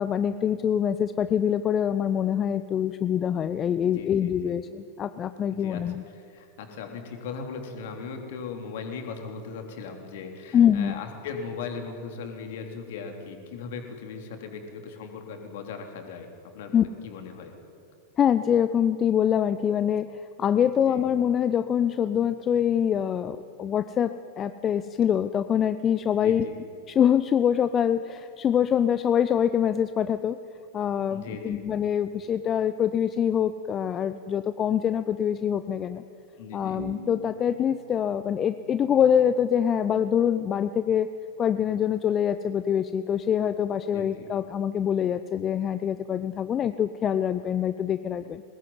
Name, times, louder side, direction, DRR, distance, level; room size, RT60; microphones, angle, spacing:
voice 1, 0.0-6.0 10.5-11.0 16.7-16.8 18.2-26.5 26.9-30.4 30.7-36.0 36.5-41.1 41.4-48.4, left 9 dB, 25° left, 12 dB, 0.7 m, -25 dB
voice 2, 3.9-4.5 5.5-5.8 6.1-16.3 16.5-17.5 20.7-21.0 26.2-26.6 31.1-31.6 36.4-36.8 43.9-44.3, left 5 dB, 55° left, 4 dB, 3.5 m, -38 dB
sound 1, 36.8-40.2, right 3 dB, 70° right, 1.2 m, -46 dB
22.0 x 19.5 x 9.5 m, 2.5 s
figure-of-eight pair, 90°, 0 cm